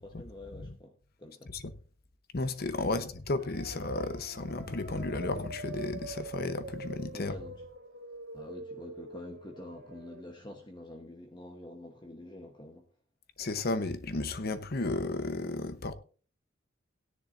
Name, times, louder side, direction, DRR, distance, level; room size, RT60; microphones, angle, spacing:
voice 1, 0.0-1.6 2.9-3.1 7.1-7.7 8.3-12.9, left 1 dB, 20° left, 1.0 m, -47 dB
voice 2, 2.3-7.4 13.4-15.9, left 2 dB, 50° left, 0.9 m, -33 dB
sound 1, 3.4-10.2, right 2 dB, 60° right, 2.3 m, -45 dB
17.0 x 10.5 x 2.6 m
head